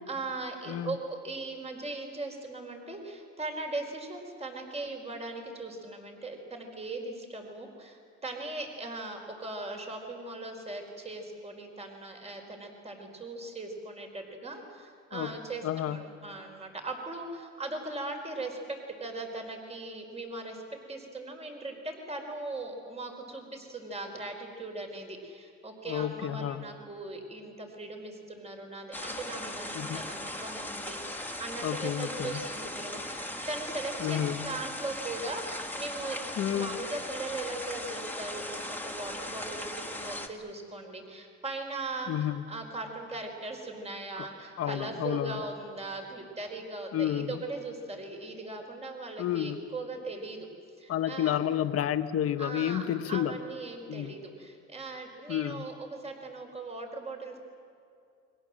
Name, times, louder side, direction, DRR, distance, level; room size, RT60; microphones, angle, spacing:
voice 1, 0.1-20.6 20.9-36.2 36.5-50.5 50.8-51.4 52.4-57.4, right 2 dB, 20° right, 3 dB, 4.6 m, -39 dB
voice 2, 15.6-16.0 25.8-26.7 29.7-30.0 31.6-32.4 34.0-34.5 36.4-36.8 42.1-42.4 44.2-44.3 44.6-45.4 46.9-47.4 49.2-49.6 50.9-53.3 53.9-54.1 55.3-55.7, left 10 dB, 55° left, 8 dB, 1.4 m, -30 dB
sound 1, 28.9-40.3, left 1 dB, 5° left, 2.6 m, -38 dB
30.0 x 23.5 x 7.7 m, 2.5 s
cardioid pair, 120°, 29 cm